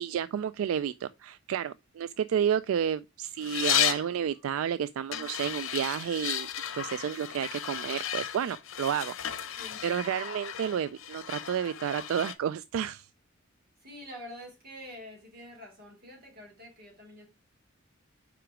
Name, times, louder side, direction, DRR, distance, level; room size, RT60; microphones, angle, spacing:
voice 1, 0.0-6.5 6.7-9.1 9.8-13.1, right 8 dB, 80° right, 0.3 m, -31 dB
sound 1, 3.4-4.1 5.1-12.3, left 10 dB, 70° left, 0.8 m, -34 dB
voice 2, 13.8-17.3, equal, 50° right, 3.3 m, -46 dB
5.9 x 4.9 x 4.8 m
head